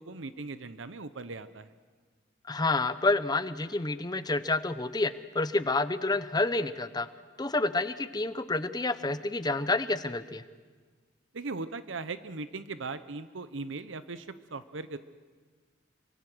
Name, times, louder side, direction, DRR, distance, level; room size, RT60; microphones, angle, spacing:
voice 1, 0.0-1.7 11.3-15.0, right 3 dB, 75° right, 12 dB, 0.9 m, -39 dB
voice 2, 2.5-7.1 7.4-10.4, left 2 dB, 20° left, 13 dB, 0.8 m, -29 dB
28.0 x 25.0 x 6.3 m, 1.5 s
head